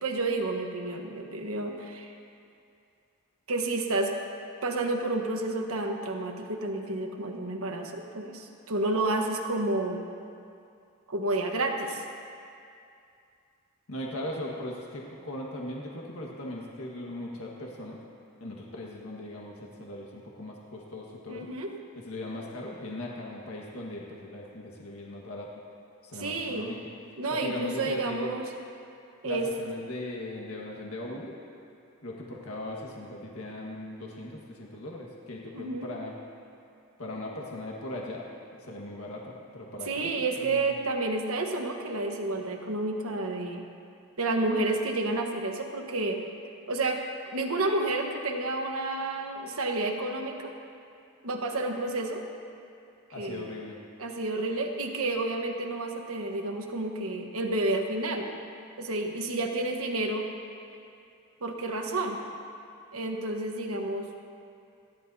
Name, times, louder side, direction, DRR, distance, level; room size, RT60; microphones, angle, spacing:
voice 1, 0.0-2.1 3.5-4.1 4.6-10.0 11.1-12.0 21.3-21.7 26.1-26.7 27.2-28.4 29.2-29.5 35.5-35.9 39.8-43.6 44.2-46.2 46.7-47.0 47.3-50.5 51.2-52.2 53.2-53.5 54.0-58.3 58.8-60.2 61.4-62.2 62.9-64.1, right 2 dB, 80° right, 2 dB, 1.3 m, -30 dB
voice 2, 13.9-18.0 18.4-21.5 21.9-25.5 26.0-26.9 27.3-28.4 29.2-31.4 32.0-36.1 37.0-38.3 38.6-40.7 53.1-53.8, left 1 dB, 75° left, -2 dB, 1.7 m, -39 dB
28.0 x 11.0 x 2.8 m, 2.5 s
head